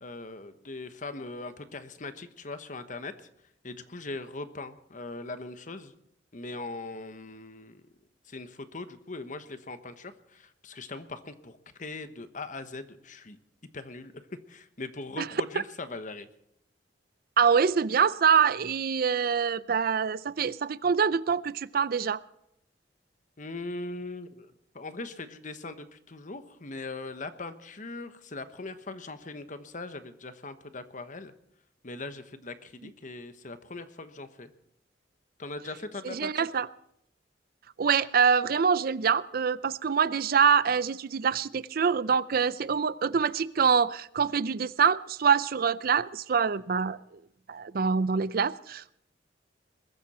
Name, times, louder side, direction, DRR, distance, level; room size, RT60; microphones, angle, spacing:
voice 1, 0.0-3.3 3.6-5.9 6.3-7.9 8.2-13.4 13.7-14.1 14.5-16.3 23.4-31.3 31.8-34.5 35.4-36.5, left 3 dB, 45° left, 11 dB, 1.2 m, -40 dB
voice 2, 17.4-22.2 36.0-36.7 37.8-47.0 47.5-49.0, right 6 dB, 55° right, 17 dB, 0.5 m, -25 dB
21.5 x 14.0 x 4.3 m, 0.75 s
head